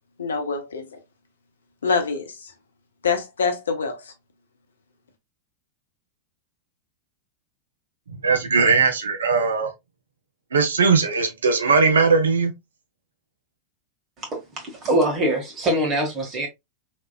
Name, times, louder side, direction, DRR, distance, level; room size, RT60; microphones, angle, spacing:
voice 1, 0.2-1.0 1.8-2.5 3.0-4.0, left 5 dB, 70° left, 0.7 m, -25 dB
voice 2, 8.1-9.7 10.5-12.5, right 4 dB, 70° right, 0.7 m, -19 dB
voice 3, 14.2-16.5, right 1 dB, 25° right, 1.6 m, -23 dB
3.3 x 3.0 x 2.3 m
figure-of-eight pair, 90°, 0 cm